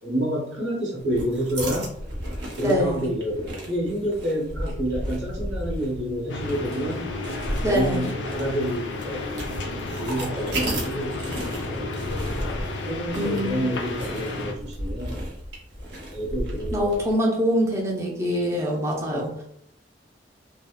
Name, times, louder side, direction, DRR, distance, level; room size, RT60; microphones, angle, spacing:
voice 1, 0.0-1.9 2.6-7.1 7.6-9.6 10.0-12.0 12.8-15.3 16.1-17.0 18.3-18.7 19.1-19.3, equal, 90° right, -4 dB, 1.0 m, -29 dB
sound 1, 1.0-17.1, right 1 dB, 65° right, 0.7 m, -34 dB
voice 2, 2.6-3.0 7.6-8.1 13.2-13.7 16.7-19.4, equal, 15° right, -2 dB, 0.4 m, -24 dB
sound 2, 6.3-14.5, left 2 dB, 75° left, 0.4 m, -32 dB
2.6 x 2.1 x 2.2 m, 0.71 s
head